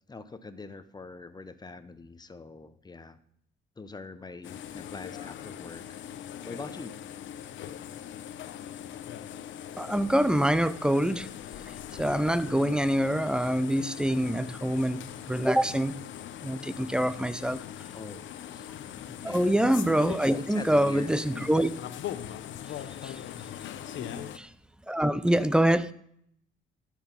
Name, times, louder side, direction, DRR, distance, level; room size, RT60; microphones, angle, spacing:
voice 1, 0.1-3.2 3.8-6.0 6.5-6.9 17.9-18.2 19.0-19.4 20.5-21.5 24.0-24.3, left 3 dB, 20° left, 12 dB, 0.8 m, -43 dB
sound 1, 4.4-24.4, left 10 dB, 70° left, 0.7 m, -41 dB
voice 2, 9.8-11.3 12.0-15.0 15.3-16.0 16.4-17.6 19.2-21.7 23.0-23.2 24.4-24.5 24.9-25.9, right 1 dB, 5° right, 15 dB, 0.5 m, -25 dB
13.0 x 4.7 x 5.5 m, 0.69 s
cardioid pair, 90°, 20 cm